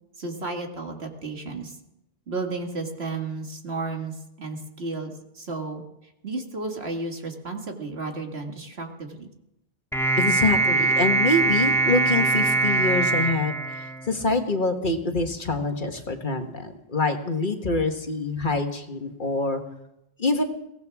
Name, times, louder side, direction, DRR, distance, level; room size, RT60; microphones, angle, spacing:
voice 1, 0.2-1.8 2.3-5.8 6.2-9.3, right 3 dB, 75° right, 3 dB, 2.3 m, -33 dB
sound 1, 9.9-14.4, right 3 dB, 5° left, 1.8 m, -23 dB
voice 2, 10.2-19.6 20.2-20.4, left 3 dB, 50° left, 5 dB, 1.6 m, -25 dB
22.5 x 17.0 x 3.6 m, 0.86 s
omnidirectional pair, 1.1 m